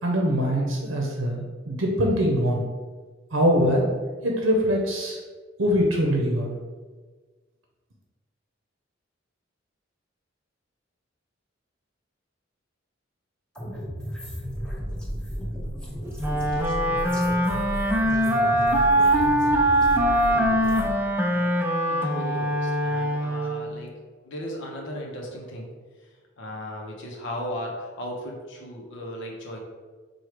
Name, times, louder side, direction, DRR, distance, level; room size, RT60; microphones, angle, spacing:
voice 1, 0.0-2.6 3.3-3.9 4.2-5.2 5.6-6.5, equal, 85° right, 0 dB, 0.7 m, -23 dB
sound 1, 13.5-20.9, equal, 5° left, 0.9 m, -33 dB
Wind instrument woodwind instrument, 16.2-23.7, right 1 dB, 10° right, 0.4 m, -22 dB
voice 2, 20.5-20.9 21.2-21.5 21.9-23.9 24.2-25.7 26.4-29.6, equal, 65° left, -1 dB, 0.7 m, -36 dB
4.5 x 2.3 x 4.8 m, 1.4 s
head